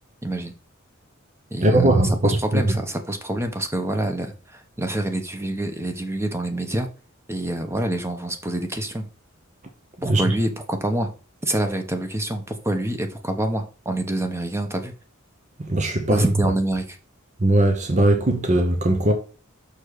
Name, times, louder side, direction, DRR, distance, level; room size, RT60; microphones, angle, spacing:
voice 1, 0.2-0.5 1.5-6.9 7.3-9.1 10.0-11.1 11.4-14.9 16.1-17.0, right 1 dB, 15° right, 1.1 m, -26 dB
voice 2, 1.6-2.6 10.0-10.2 15.7-16.2 17.4-19.1, right 1 dB, 35° right, 0.9 m, -19 dB
6.5 x 4.2 x 4.9 m
head